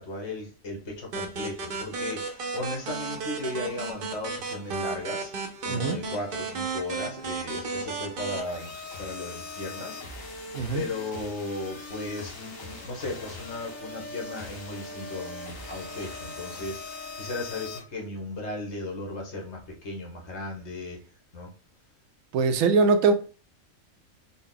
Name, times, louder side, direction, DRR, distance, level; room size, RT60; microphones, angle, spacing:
voice 1, 0.0-5.3 5.6-8.7 9.0-10.0 10.7-21.0 21.3-21.5, left 2 dB, 60° left, 1.3 m, -36 dB
sound 1, 1.1-8.4, right 4 dB, 50° right, 0.7 m, -34 dB
voice 2, 5.7-6.0 10.5-10.9 22.3-23.1, right 4 dB, 85° right, 1.0 m, -22 dB
sound 2, 8.4-17.8, left 3 dB, 75° left, 1.5 m, -40 dB
4.1 x 2.1 x 3.8 m
omnidirectional pair, 1.4 m